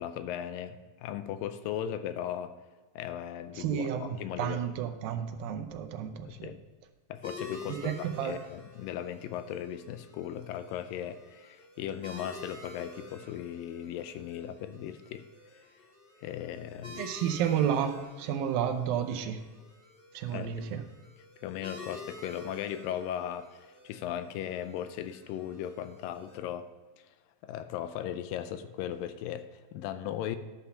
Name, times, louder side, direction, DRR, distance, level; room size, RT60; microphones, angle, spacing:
voice 1, 0.0-2.5 3.0-4.6 6.2-6.6 7.1-7.9 8.2-15.2 16.2-17.0 20.3-20.7 21.4-26.7 27.4-30.4, left 10 dB, 85° left, 11 dB, 2.3 m, -37 dB
voice 2, 3.5-6.5 7.7-8.4 17.0-19.4 20.1-20.8, right 9 dB, 85° right, 7 dB, 2.5 m, -31 dB
sound 1, 7.2-26.4, left 3 dB, 20° left, 2.6 m, -49 dB
11.5 x 5.9 x 5.5 m, 1.3 s
omnidirectional pair, 4.0 m